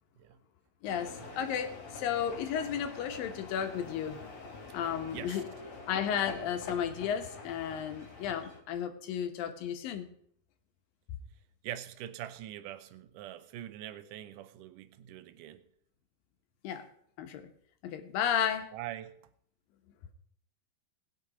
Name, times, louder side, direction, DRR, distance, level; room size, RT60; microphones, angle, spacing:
voice 1, 0.8-4.2 4.7-5.5 5.9-10.1 16.6-16.9 17.2-17.5 17.8-18.7, left 8 dB, 85° left, 2.9 m, -33 dB
sound 1, 0.8-8.6, left 3 dB, 50° left, 3.7 m, -46 dB
voice 2, 5.1-5.4 11.6-15.6 18.4-19.2, right 12 dB, 80° right, 2.2 m, -44 dB
19.5 x 6.7 x 5.0 m
omnidirectional pair, 4.0 m